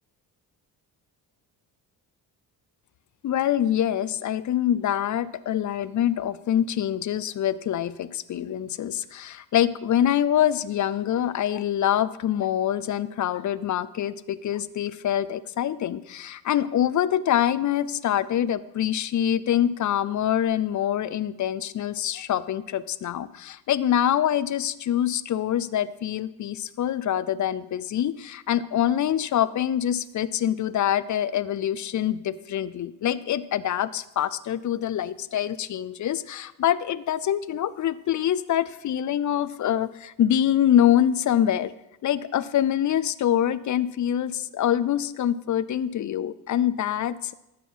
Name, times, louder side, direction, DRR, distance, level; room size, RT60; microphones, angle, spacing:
voice 1, 3.2-41.7 42.0-47.3, left 10 dB, 50° left, 16 dB, 0.5 m, -25 dB
14.0 x 6.0 x 5.5 m, 0.92 s
cardioid pair, 120°, 40 cm